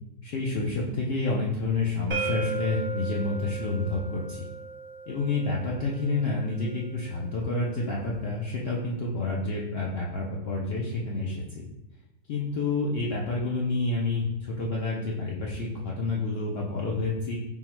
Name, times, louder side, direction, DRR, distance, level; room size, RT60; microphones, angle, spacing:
voice 1, 0.2-4.5 5.1-11.6 12.3-17.4, left 3 dB, 90° left, -3 dB, 0.5 m, -29 dB
sound 1, 2.1-7.9, right 5 dB, 85° right, 0.3 m, -37 dB
3.8 x 2.0 x 4.3 m, 0.93 s
omnidirectional pair, 1.6 m